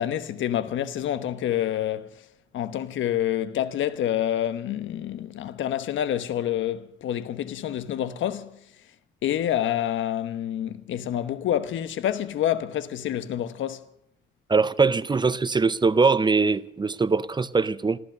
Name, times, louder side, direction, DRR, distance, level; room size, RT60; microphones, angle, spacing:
voice 1, 0.0-2.3 2.5-8.6 9.2-13.8, left 11 dB, 75° left, 1.2 m, -27 dB
voice 2, 14.5-18.0, right 4 dB, 20° right, 0.6 m, -22 dB
14.5 x 14.0 x 6.6 m
cardioid pair, 90°, 20 cm